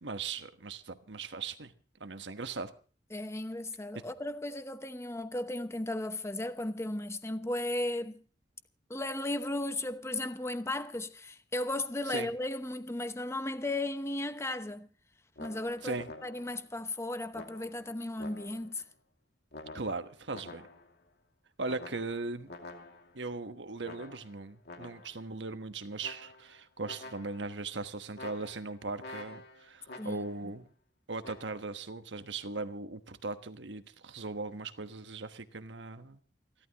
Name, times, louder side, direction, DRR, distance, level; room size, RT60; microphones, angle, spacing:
voice 1, 0.0-1.7 2.0-2.7 12.1-12.3 15.8-16.1 19.7-20.7 21.6-22.5 23.1-30.7 31.1-36.2, right 3 dB, 80° right, 1.3 m, -39 dB
voice 2, 3.1-8.2 8.9-14.9 15.4-18.8 30.0-30.3, left 1 dB, 15° left, 0.9 m, -35 dB
sound 1, 15.4-16.7 17.3-18.8 19.5-21.0 21.7-23.3 23.8-25.3 26.0-26.6 26.8-27.6 28.1-30.5 31.2-31.6, left 2 dB, 65° left, 2.4 m, -48 dB
28.5 x 12.0 x 3.0 m
head